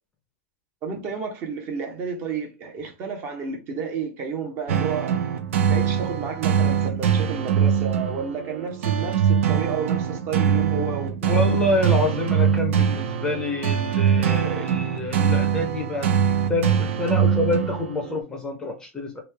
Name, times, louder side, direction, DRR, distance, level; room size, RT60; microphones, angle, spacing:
voice 1, 0.8-5.2 5.7-11.2, right 5 dB, 30° right, 0.8 m, -31 dB
sound 1, 4.7-18.2, right 8 dB, 65° right, 0.6 m, -23 dB
voice 2, 11.2-16.1 16.5-19.2, left 2 dB, 10° left, 0.6 m, -27 dB
3.1 x 2.8 x 3.3 m
supercardioid pair, 155°, 7 cm